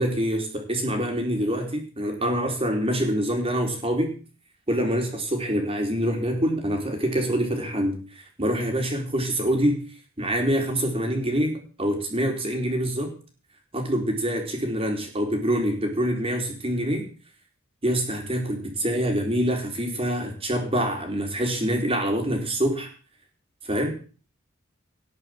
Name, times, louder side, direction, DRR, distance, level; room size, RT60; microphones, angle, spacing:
voice 1, 0.0-4.1 4.7-8.0 8.4-9.8 10.2-13.1 13.7-17.1 17.8-22.9 23.7-23.9, equal, 30° right, 3 dB, 4.0 m, -25 dB
18.5 x 6.8 x 7.6 m, 0.38 s
head